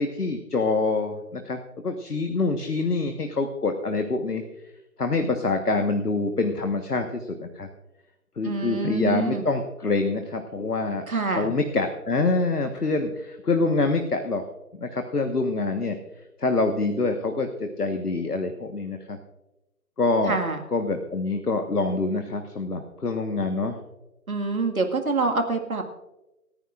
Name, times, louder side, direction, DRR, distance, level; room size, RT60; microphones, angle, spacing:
voice 1, 0.0-4.4 5.0-7.7 8.4-14.4 14.7-16.0 16.4-19.2 20.0-20.4 20.7-23.8, left 3 dB, 75° left, 6 dB, 1.5 m, -26 dB
voice 2, 8.4-9.4 11.1-11.5 20.3-20.6 24.3-25.8, right 3 dB, 65° right, 4 dB, 2.1 m, -26 dB
27.5 x 10.0 x 2.5 m, 0.97 s
figure-of-eight pair, 165°, 46 cm